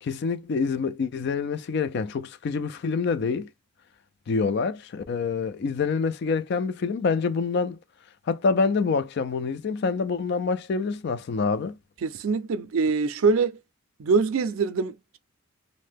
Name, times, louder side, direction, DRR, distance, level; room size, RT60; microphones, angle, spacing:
voice 1, 0.0-3.5 4.3-7.8 8.3-11.8, left 4 dB, 55° left, 0.3 m, -26 dB
voice 2, 12.0-13.6 14.0-15.2, right 4 dB, 80° right, 0.4 m, -24 dB
2.7 x 2.1 x 3.4 m
head